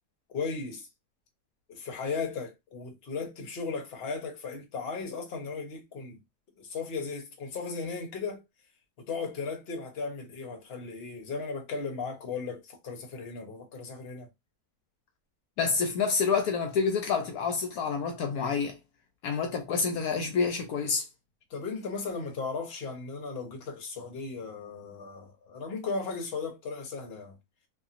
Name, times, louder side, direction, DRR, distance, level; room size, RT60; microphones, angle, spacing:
voice 1, 0.3-0.9 1.7-6.2 6.6-8.4 9.1-14.3 21.5-27.4, left 4 dB, 45° left, 0.9 m, -36 dB
voice 2, 15.6-18.8 19.2-21.0, left 5 dB, 75° left, 1.0 m, -28 dB
2.8 x 2.7 x 2.5 m
omnidirectional pair, 1.7 m